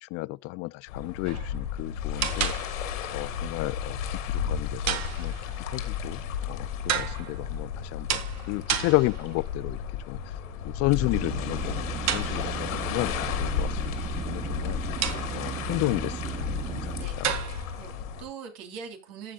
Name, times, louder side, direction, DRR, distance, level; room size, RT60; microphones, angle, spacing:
voice 1, 0.0-2.5 3.1-4.0 4.2-5.3 5.7-8.2 8.5-9.8 10.1-10.2 10.6-11.7 12.0-13.8 14.2-14.8 15.3-17.3, left 22 dB, 40° left, 0.4 m, -31 dB
sound 1, 0.9-18.2, left 8 dB, 75° left, 3.1 m, -33 dB
sound 2, 1.2-1.6 2.2-3.1 4.9-5.6 6.9-7.5 8.1-9.5 12.1-12.8 15.0-15.6 17.2-17.8, right 9 dB, 40° right, 1.9 m, -32 dB
sound 3, 11.0-17.1, right 8 dB, 20° right, 0.5 m, -36 dB
voice 2, 17.8-19.3, right 6 dB, 55° right, 3.6 m, -42 dB
14.5 x 8.0 x 2.3 m
hypercardioid pair, 95°, 40 cm